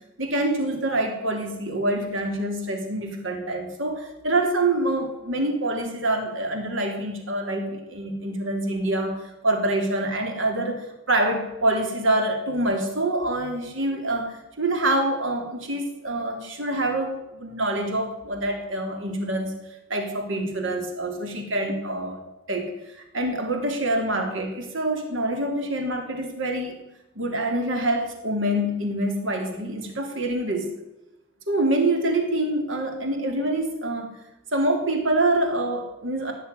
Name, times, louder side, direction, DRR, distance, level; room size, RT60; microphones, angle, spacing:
voice 1, 0.2-19.6 19.9-22.2 22.5-26.7 27.1-30.7 31.5-34.1 34.5-36.3, right 1 dB, 85° right, 4 dB, 3.2 m, -26 dB
17.0 x 6.8 x 9.8 m, 0.97 s
head